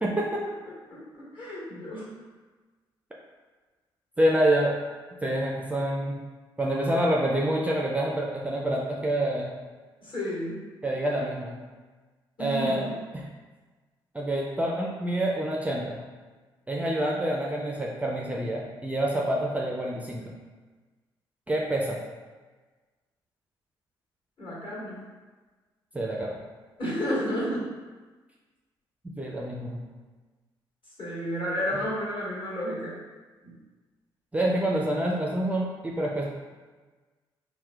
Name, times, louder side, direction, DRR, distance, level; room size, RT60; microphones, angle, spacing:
voice 1, 0.0-0.4 4.2-4.8 5.2-6.2 6.6-9.5 10.8-11.6 12.4-12.9 13.1-13.3 14.1-16.0 16.7-20.2 21.5-22.0 25.9-26.3 29.2-29.8 34.3-36.2, right 1 dB, 10° right, -3 dB, 0.4 m, -27 dB
voice 2, 0.9-2.2 10.0-10.6 12.4-13.0 24.4-25.0 26.8-27.7 31.0-33.0 33.4-33.5, equal, 45° left, -7 dB, 1.4 m, -32 dB
4.2 x 2.1 x 2.3 m, 1.3 s
figure-of-eight pair, 40°, 12 cm